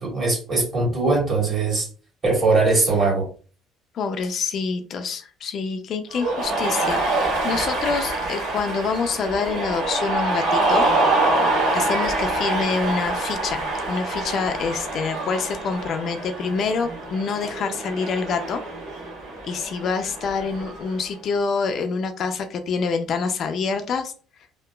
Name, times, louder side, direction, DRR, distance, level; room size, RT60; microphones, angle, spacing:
voice 1, 0.0-1.9 2.2-3.3, right 3 dB, 30° right, -3 dB, 1.5 m, -20 dB
voice 2, 3.9-10.9 11.7-18.6 19.4-24.1, left 5 dB, 50° left, 7 dB, 0.3 m, -26 dB
Cheering, 6.1-21.0, right 2 dB, 90° right, 1.0 m, -25 dB
2.8 x 2.3 x 2.2 m, 0.39 s
cardioid pair, 135°, 0 cm